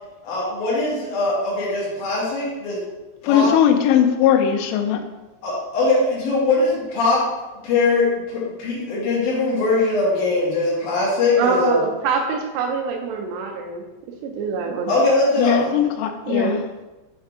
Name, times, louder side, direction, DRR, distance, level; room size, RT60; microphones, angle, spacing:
voice 1, 0.2-2.8 3.2-3.5 5.4-7.2 7.6-11.8 14.9-15.7, left 3 dB, 65° left, -6 dB, 2.0 m, -21 dB
voice 2, 3.2-5.0 15.4-16.6, left 9 dB, 85° left, 5 dB, 2.6 m, -19 dB
voice 3, 11.4-13.8 14.2-14.9 16.3-16.6, right 5 dB, 90° right, 1 dB, 2.4 m, -24 dB
7.4 x 3.6 x 3.5 m, 1.1 s
omnidirectional pair, 5.6 m